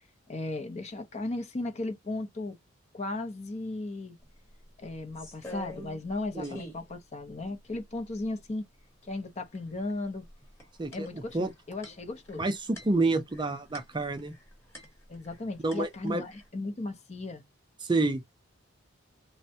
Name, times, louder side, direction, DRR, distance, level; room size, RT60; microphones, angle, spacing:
voice 1, 0.3-2.6 2.9-4.2 4.8-8.6 9.0-10.2 10.9-12.5 15.1-17.4, left 2 dB, 30° left, 0.5 m, -36 dB
sound 1, 4.2-4.3 4.6-6.2 6.4-6.9 7.4-7.5 7.8-8.5 9.5-9.9 10.2-15.4 15.7-16.5, equal, 10° left, 0.9 m, -47 dB
voice 2, 10.8-11.5 12.4-14.3 15.6-16.2 17.8-18.2, right 2 dB, 20° right, 0.4 m, -29 dB
3.3 x 2.1 x 2.6 m
head